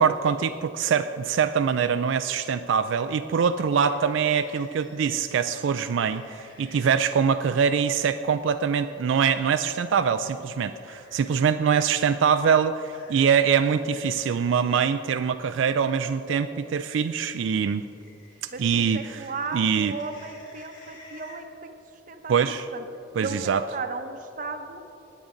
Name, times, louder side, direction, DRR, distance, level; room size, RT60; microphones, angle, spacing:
voice 1, 0.0-17.8 18.6-19.3 19.5-19.9 22.3-22.7 23.2-23.7, right 7 dB, 80° right, 10 dB, 0.3 m, -24 dB
sound 1, 3.8-7.3 9.3-9.6 10.8-11.9 12.4-14.4 17.5-21.4, left 2 dB, 85° left, 3.0 m, -52 dB
voice 2, 18.5-21.7 22.1-22.8 23.2-24.8, right 4 dB, 45° right, 6 dB, 0.8 m, -35 dB
19.5 x 8.5 x 3.8 m, 2.9 s
head